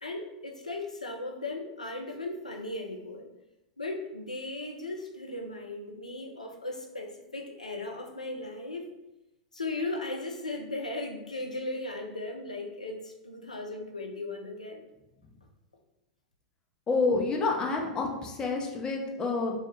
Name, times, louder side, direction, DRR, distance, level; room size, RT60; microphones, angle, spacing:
voice 1, 0.0-3.3 3.8-8.9 9.5-14.8, left 2 dB, 85° left, 2 dB, 0.4 m, -37 dB
voice 2, 16.9-19.5, left 3 dB, 20° left, 0 dB, 0.4 m, -28 dB
2.2 x 2.0 x 2.9 m, 0.95 s
figure-of-eight pair, 95°, 4 cm